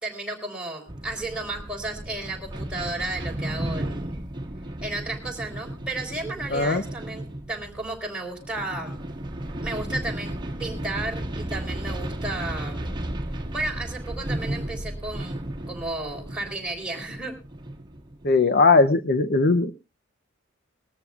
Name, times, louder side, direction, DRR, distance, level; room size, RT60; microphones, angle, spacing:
voice 1, 0.0-4.2 4.8-9.0 9.6-10.3 10.6-13.0 13.5-15.4 15.7-17.3, right 2 dB, 5° right, -1 dB, 3.8 m, -33 dB
sound 1, 0.9-18.4, right 1 dB, 25° right, 1.6 m, -34 dB
voice 2, 6.5-6.8 18.2-19.7, left 3 dB, 50° left, 9 dB, 0.6 m, -19 dB
21.5 x 14.0 x 2.4 m, 0.28 s
head